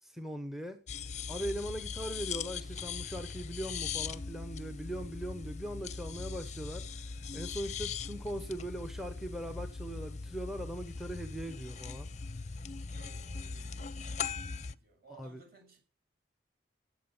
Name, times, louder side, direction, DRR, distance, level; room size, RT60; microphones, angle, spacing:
voice 1, 0.0-0.8 1.3-12.1 15.1-15.4, equal, ahead, 0.9 m, -40 dB
sound 1, 0.9-14.7, left 5 dB, 40° left, 0.6 m, -40 dB
voice 2, 12.8-15.8, right 3 dB, 55° right, 7.0 m, -59 dB
18.5 x 7.8 x 7.0 m
head